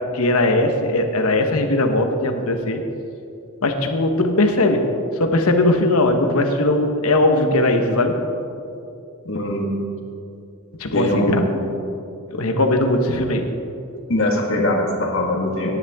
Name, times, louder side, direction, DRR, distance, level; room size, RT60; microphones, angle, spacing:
voice 1, 0.1-2.8 3.6-4.8 5.2-8.1 10.8-11.4 12.3-13.5, left 2 dB, 85° left, 5 dB, 1.2 m, -19 dB
voice 2, 9.3-9.7 10.9-11.5 14.1-15.8, left 1 dB, 65° left, 0 dB, 1.7 m, -21 dB
17.5 x 10.5 x 3.6 m, 2.6 s
head